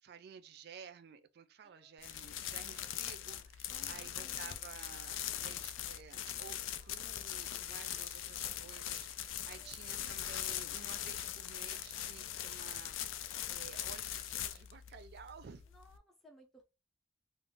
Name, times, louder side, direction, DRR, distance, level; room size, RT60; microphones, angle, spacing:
voice 1, 0.0-13.2 13.5-15.7, right 7 dB, 55° right, 0.4 m, -53 dB
voice 2, 1.6-2.1 3.7-4.6 9.4-10.2 15.7-16.6, right 1 dB, ahead, 0.5 m, -61 dB
sound 1, 2.0-16.0, left 11 dB, 90° left, 0.3 m, -41 dB
2.4 x 2.0 x 3.6 m
head